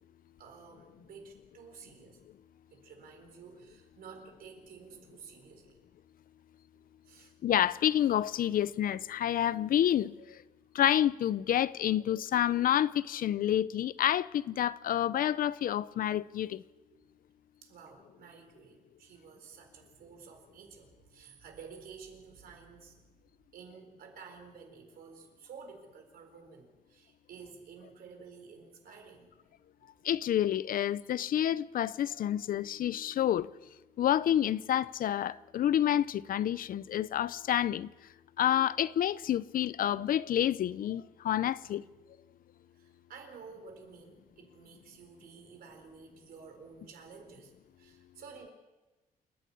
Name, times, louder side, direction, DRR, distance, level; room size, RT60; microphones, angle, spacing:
voice 1, 0.4-2.2 2.7-5.8 7.0-7.3 16.9-17.0 17.6-23.0 23.5-29.9 42.7-47.5 47.8-48.5, right 5 dB, 85° right, 4.4 m, -52 dB
voice 2, 7.4-10.1 10.7-16.6 30.0-33.5 34.0-37.9 38.4-41.8, left 11 dB, 70° left, 0.6 m, -28 dB
28.0 x 10.5 x 8.7 m
cardioid pair, 135°, 15 cm